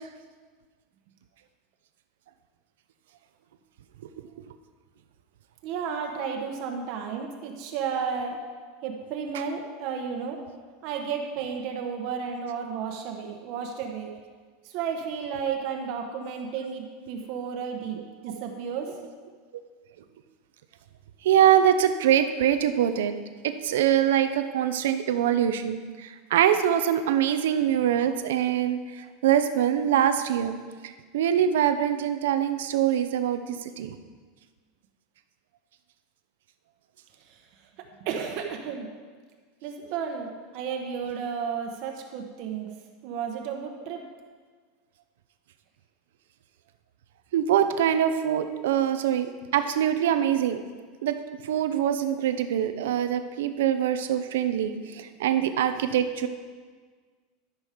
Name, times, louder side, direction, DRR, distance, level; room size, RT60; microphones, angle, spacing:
voice 1, 5.6-8.4 8.8-10.4 10.8-14.1 14.6-18.0 18.2-18.9 37.3-37.4 38.0-38.9 39.6-42.7 43.0-44.0, right 6 dB, 45° right, 2 dB, 1.0 m, -32 dB
voice 2, 18.0-18.4 21.2-23.1 23.6-30.6 30.8-34.0 47.3-50.6 51.0-51.1 51.4-56.3, right 10 dB, 90° right, 9 dB, 0.7 m, -24 dB
13.0 x 6.2 x 5.1 m, 1.5 s
supercardioid pair, 170°, 0 cm